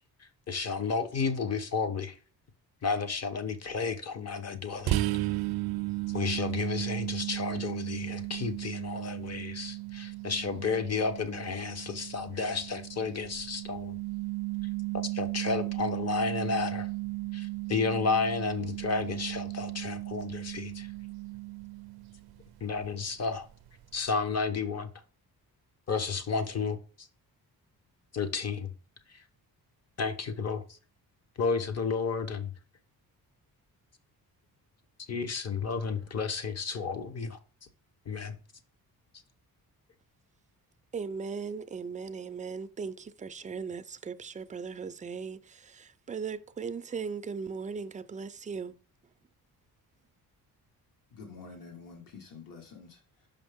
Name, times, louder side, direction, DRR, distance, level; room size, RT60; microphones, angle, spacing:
voice 1, 0.0-2.2 2.8-5.1 6.1-14.0 15.1-16.9 17.3-20.9 22.6-23.5 23.9-24.9 25.9-27.1 28.1-28.7 29.1-29.2 30.0-30.8 31.4-32.5 35.1-37.4 38.1-38.4, left 5 dB, 40° left, 0.9 m, -32 dB
sound 1, 4.9-22.4, right 19 dB, 75° right, 0.5 m, -35 dB
voice 2, 40.9-48.7, right 5 dB, 20° right, 0.3 m, -38 dB
voice 3, 51.1-53.3, left 5 dB, 60° left, 1.7 m, -48 dB
6.0 x 5.1 x 3.5 m
cardioid pair, 125°, 38 cm